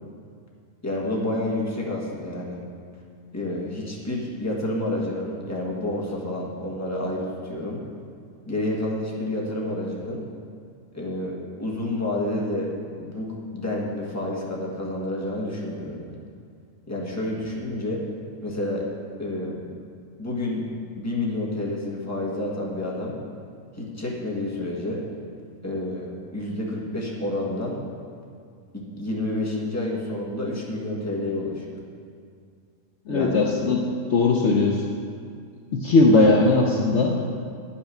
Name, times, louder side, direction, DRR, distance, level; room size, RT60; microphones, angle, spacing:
voice 1, 0.8-2.6 3.3-7.8 8.4-10.2 10.9-12.7 13.0-16.1 16.9-18.0 18.4-18.9 19.2-19.8 20.2-20.7 21.0-23.2 23.7-25.0 25.6-27.8 28.7-31.8 33.1-33.4 36.1-36.4, left 1 dB, 10° left, -3 dB, 1.4 m, -29 dB
voice 2, 33.1-33.8 34.1-34.8 35.7-37.2, left 3 dB, 60° left, 0 dB, 1.0 m, -19 dB
9.0 x 5.7 x 6.6 m, 2.3 s
omnidirectional pair, 1.4 m